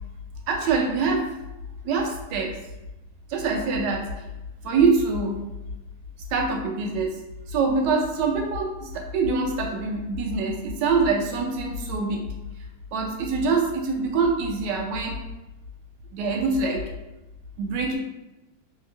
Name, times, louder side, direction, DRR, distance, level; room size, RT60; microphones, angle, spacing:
voice 1, 0.5-1.4 1.8-2.6 3.3-4.3 4.6-5.5 6.3-7.2 7.5-12.3 12.9-15.2 16.1-16.8 17.6-18.0, right 4 dB, 80° right, 0 dB, 1.2 m, -24 dB
2.9 x 2.8 x 2.4 m, 1.0 s
omnidirectional pair, 1.9 m